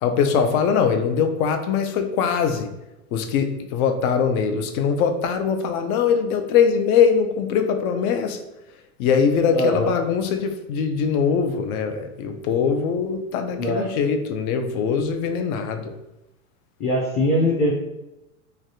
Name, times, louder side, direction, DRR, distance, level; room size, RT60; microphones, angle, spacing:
voice 1, 0.0-2.7 3.1-8.4 9.0-15.9, left 6 dB, 75° left, 7 dB, 0.6 m, -22 dB
voice 2, 9.5-9.9 13.6-13.9 16.8-17.7, left 1 dB, 30° left, -3 dB, 0.5 m, -21 dB
3.2 x 2.3 x 2.7 m, 0.94 s
supercardioid pair, 130°, 43 cm